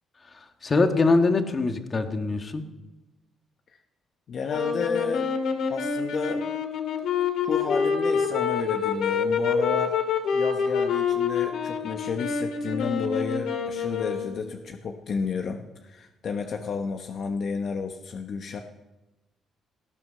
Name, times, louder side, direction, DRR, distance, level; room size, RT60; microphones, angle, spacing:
voice 1, 0.3-2.6, left 3 dB, 35° left, 6 dB, 1.8 m, -23 dB
voice 2, 4.3-5.3 5.7-6.4 7.4-9.9 10.3-18.6, left 5 dB, 60° left, 4 dB, 1.2 m, -31 dB
sound 1, 4.5-14.4, left 6 dB, 80° left, 2.3 m, -27 dB
18.5 x 11.0 x 6.5 m, 1.0 s
cardioid pair, 90°, 0 cm